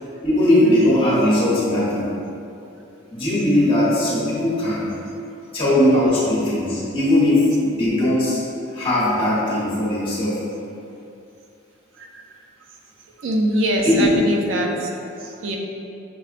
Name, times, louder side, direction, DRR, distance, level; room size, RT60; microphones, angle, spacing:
voice 1, 0.2-2.1 3.1-4.9 5.5-8.4 8.7-10.4 13.8-14.1, left 1 dB, 30° left, -9 dB, 1.0 m, -19 dB
voice 2, 13.2-14.9 15.2-15.6, right 1 dB, 75° right, 0 dB, 0.4 m, -23 dB
6.0 x 2.1 x 2.4 m, 2.7 s
head